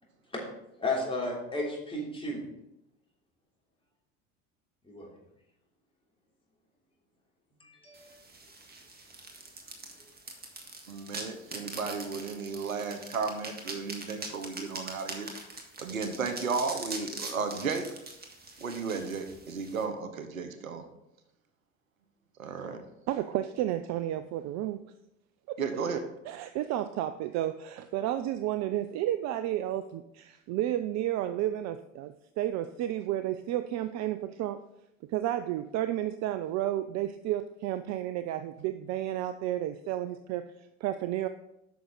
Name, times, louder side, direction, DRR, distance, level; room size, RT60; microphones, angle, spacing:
voice 1, 0.8-2.4 4.8-5.1 7.6-8.0, left 2 dB, 15° left, -3 dB, 3.1 m, -33 dB
sound 1, 7.9-19.8, right 3 dB, 25° right, 1.7 m, -43 dB
voice 2, 10.9-15.3 15.8-17.9 18.6-20.8 22.4-22.8 25.6-26.0, right 5 dB, 90° right, 8 dB, 0.9 m, -34 dB
voice 3, 23.1-24.8 25.5-25.6 26.3-34.6 35.1-40.4 40.8-41.3, right 13 dB, 45° right, 11 dB, 0.5 m, -32 dB
9.3 x 6.3 x 3.9 m, 0.84 s
hypercardioid pair, 70°, 40 cm